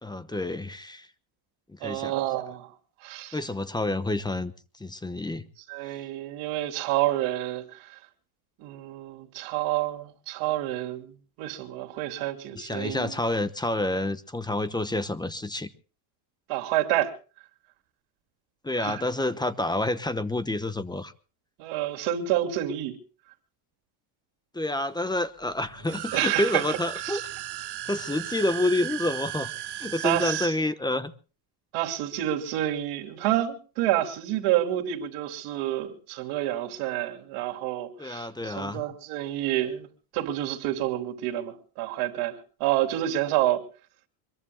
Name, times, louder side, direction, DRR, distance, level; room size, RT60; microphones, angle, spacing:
voice 1, 0.0-1.1 1.7-2.1 3.3-4.5 4.8-5.4 12.5-15.7 18.6-21.1 24.5-27.2 27.9-31.1 38.0-38.8, left 1 dB, 10° left, 1.0 m, -28 dB
voice 2, 1.8-2.7 3.0-3.4 5.7-7.9 8.6-11.1 11.4-13.1 16.5-17.1 18.8-18.9 21.6-23.0 26.1-26.6 27.0-27.2 30.0-30.5 31.7-39.9 40.1-43.6, right 13 dB, 80° right, 3.1 m, -28 dB
sound 1, 25.8-30.5, right 13 dB, 50° right, 1.6 m, -35 dB
24.5 x 22.5 x 2.2 m
cardioid pair, 130°, 49 cm